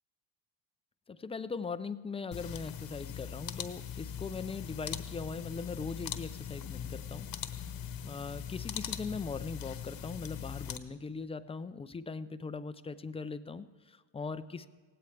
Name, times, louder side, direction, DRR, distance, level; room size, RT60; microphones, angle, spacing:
voice 1, 1.1-7.3 8.0-14.7, left 4 dB, 15° left, 13 dB, 0.3 m, -40 dB
sound 1, 2.3-10.8, left 9 dB, 45° left, 1.0 m, -41 dB
17.5 x 16.5 x 3.3 m, 1.5 s
cardioid pair, 105°, 48 cm